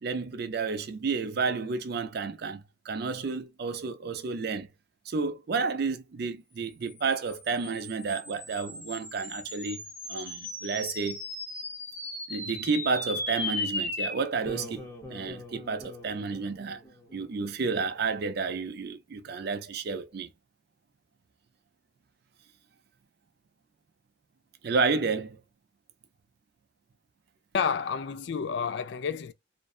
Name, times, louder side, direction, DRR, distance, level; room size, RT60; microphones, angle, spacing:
voice 1, 0.0-4.7 5.1-9.8 10.1-11.2 12.3-16.8 17.1-20.3 24.6-25.4, right 4 dB, 50° right, 0.4 m, -31 dB
sound 1, 7.0-17.6, left 2 dB, 10° left, 0.7 m, -38 dB
voice 2, 27.5-29.3, left 6 dB, 60° left, 0.3 m, -30 dB
2.5 x 2.1 x 2.4 m
head